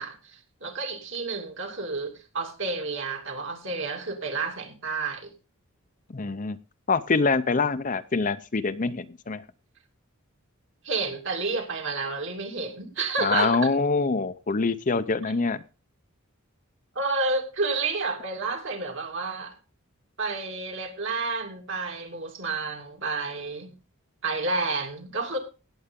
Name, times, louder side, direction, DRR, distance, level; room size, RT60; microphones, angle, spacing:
voice 1, 0.0-5.3 10.8-13.6 16.9-19.5 20.2-23.7 24.2-25.4, right 3 dB, 60° right, 2.8 m, -30 dB
voice 2, 6.1-6.6 6.9-9.4 13.2-15.6, left 4 dB, 35° left, 0.6 m, -25 dB
17.0 x 7.9 x 3.7 m
head